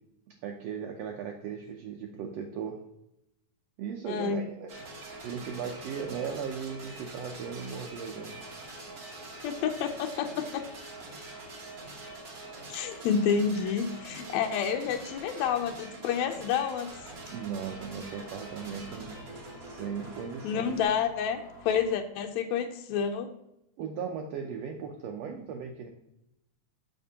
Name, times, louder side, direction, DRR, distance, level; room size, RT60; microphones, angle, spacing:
voice 1, 0.3-2.8 3.8-4.8 5.2-8.5 17.3-19.2 19.6-20.8 23.8-25.9, right 7 dB, 75° right, 2 dB, 1.5 m, -37 dB
voice 2, 4.1-4.4 9.4-10.7 12.7-17.1 20.4-23.3, left 7 dB, 75° left, 4 dB, 1.7 m, -29 dB
sound 1, 4.7-20.8, right 2 dB, 55° right, 1.0 m, -45 dB
sound 2, 16.9-21.9, left 1 dB, 10° left, 1.3 m, -51 dB
6.8 x 6.7 x 2.8 m, 0.83 s
omnidirectional pair, 3.5 m